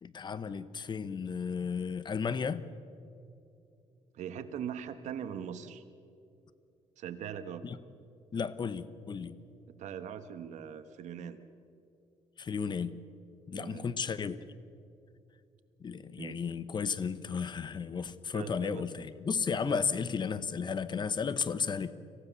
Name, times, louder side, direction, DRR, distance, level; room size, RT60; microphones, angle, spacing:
voice 1, 0.0-2.6 7.6-7.8 8.3-9.4 12.4-13.0 13.5-14.4 15.8-21.9, left 6 dB, 40° left, 15 dB, 0.9 m, -34 dB
voice 2, 4.1-5.8 7.0-7.7 9.7-11.4 13.5-13.9 16.2-16.4 18.3-18.8 19.6-19.8, right 8 dB, 75° right, 10 dB, 1.3 m, -41 dB
26.5 x 15.0 x 7.0 m, 2.6 s
cardioid pair, 105°, 12 cm